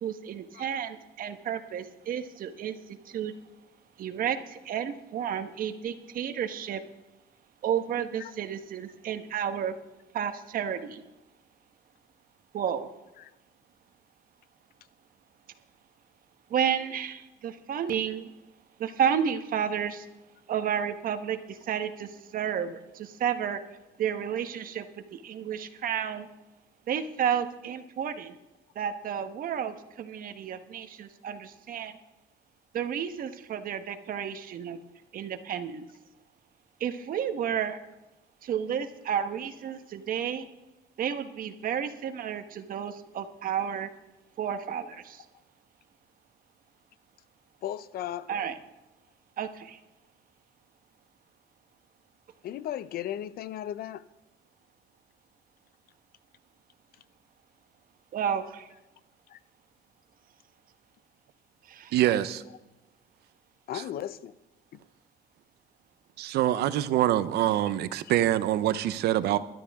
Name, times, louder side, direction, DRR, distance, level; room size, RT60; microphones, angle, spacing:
voice 1, 0.0-3.3 4.0-6.8 7.6-9.7 10.1-11.0 12.5-12.9 16.5-18.3 18.8-20.1 20.5-23.6 24.0-24.8 25.1-26.3 26.9-28.3 28.7-32.0 32.7-34.8 35.1-35.8 36.8-37.8 38.4-40.5 41.0-43.9 44.4-45.2 48.3-48.6 49.4-49.8 58.1-58.7 61.7-61.9, right 8 dB, 55° right, 1.3 m, -31 dB
voice 2, 47.6-48.3 52.4-54.0 59.3-59.4 63.7-64.3, left 11 dB, 60° left, 0.6 m, -36 dB
voice 3, 61.9-62.4 63.7-63.8 66.2-69.4, right 13 dB, 75° right, 0.8 m, -25 dB
20.0 x 12.5 x 3.6 m
cardioid pair, 110°, 17 cm